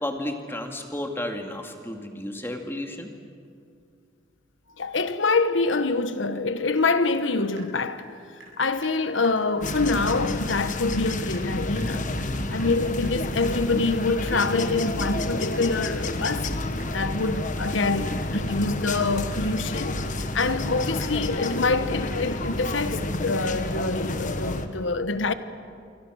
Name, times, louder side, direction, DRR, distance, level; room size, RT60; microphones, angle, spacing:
voice 1, 0.0-3.1, left 1 dB, 15° left, 2.2 m, -32 dB
voice 2, 4.8-8.1 8.6-12.1 12.5-16.5 16.9-20.0 20.3-25.3, left 3 dB, 85° left, 1.2 m, -25 dB
Water tap faucet / Drip, 6.7-6.9 7.1-8.6 8.8-9.0 9.2-9.4 9.7-9.8 10.1-10.2 10.5-20.0, right 3 dB, 75° right, 7.2 m, -49 dB
sound 1, 9.6-24.7, left 2 dB, 45° left, 1.3 m, -30 dB
27.5 x 24.0 x 6.4 m
head